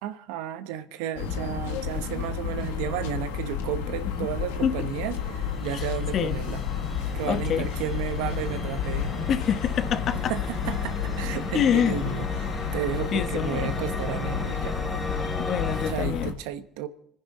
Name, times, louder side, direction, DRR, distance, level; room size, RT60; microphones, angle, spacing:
voice 1, 0.0-6.6 7.1-9.1 10.1-14.8 15.9-16.9, right 10 dB, 85° right, 0.9 m, -33 dB
sound 1, 1.2-16.3, left 8 dB, 90° left, 1.4 m, -31 dB
sound 2, 4.4-15.9, left 1 dB, 15° left, 3.1 m, -36 dB
voice 2, 7.2-7.7 9.3-10.3 11.5-11.9 13.1-13.7 15.4-16.4, left 8 dB, 55° left, 0.9 m, -26 dB
26.0 x 10.0 x 4.0 m
supercardioid pair, 70°, 0 cm